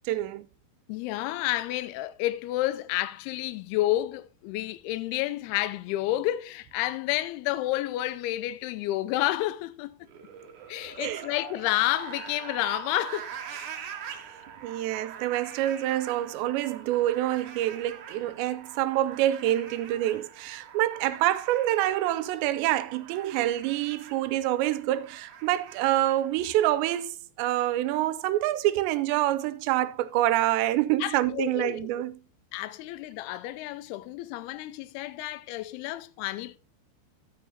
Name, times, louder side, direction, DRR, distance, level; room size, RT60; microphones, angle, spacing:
voice 1, 0.1-0.5 11.0-11.2 13.5-13.6 14.6-32.2, right 14 dB, 85° right, 2.9 m, -27 dB
voice 2, 0.9-10.0 10.7-13.3 31.0-31.9 32.5-36.6, left 15 dB, 80° left, 2.4 m, -30 dB
sound 1, 10.0-27.0, right 8 dB, 60° right, 2.3 m, -44 dB
13.0 x 8.9 x 2.8 m
omnidirectional pair, 5.1 m